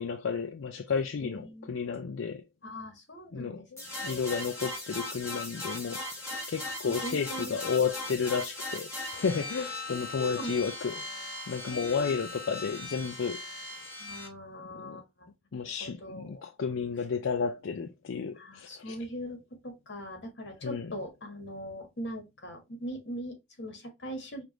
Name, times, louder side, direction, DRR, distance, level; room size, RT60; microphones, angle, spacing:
voice 1, 0.0-2.4 3.3-11.0 11.5-13.4 14.7-15.0 15.5-19.0 20.6-20.9, left 5 dB, 85° left, 0.5 m, -32 dB
voice 2, 1.2-2.1 2.6-4.3 5.9-6.0 6.3-7.5 10.2-10.6 11.7-12.3 14.0-15.3 15.6-16.4 18.4-24.4, equal, 60° left, 1.6 m, -41 dB
sound 1, 3.8-14.3, left 2 dB, 15° left, 1.2 m, -39 dB
5.1 x 2.5 x 3.0 m
head